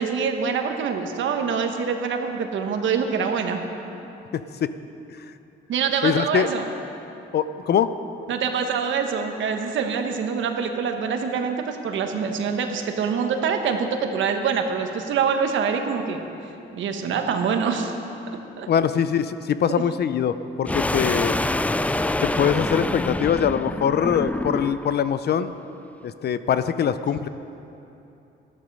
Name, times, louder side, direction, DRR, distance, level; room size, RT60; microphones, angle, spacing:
voice 1, 0.0-3.6 5.7-6.6 8.3-16.2 16.7-17.9 18.6-18.7 19.7-19.8, right 6 dB, 75° right, 5 dB, 1.3 m, -25 dB
voice 2, 4.3-4.7 6.0-6.5 7.3-7.9 18.7-21.4 22.2-25.5 26.0-27.3, left 8 dB, 55° left, 12 dB, 0.6 m, -23 dB
sound 1, 20.7-25.0, left 2 dB, 5° left, 0.3 m, -26 dB
14.0 x 12.5 x 5.5 m, 2.9 s
cardioid pair, 90°, 20 cm